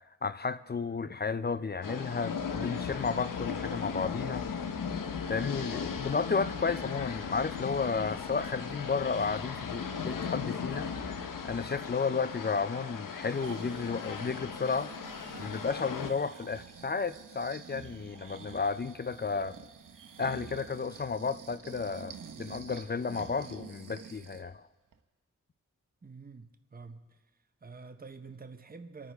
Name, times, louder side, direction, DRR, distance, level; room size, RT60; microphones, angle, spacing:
voice 1, 0.2-4.5 5.3-10.9 11.4-14.9 15.4-19.7 20.2-24.7, left 5 dB, 30° left, 0.5 m, -33 dB
sound 1, 1.8-16.1, left 6 dB, 80° left, 0.9 m, -37 dB
Breathing, 13.1-24.5 24.9-25.0, right 6 dB, 75° right, 1.0 m, -49 dB
voice 2, 26.0-27.2 27.6-29.1, right 4 dB, 30° right, 0.9 m, -47 dB
26.0 x 9.4 x 3.5 m
cardioid pair, 45°, 32 cm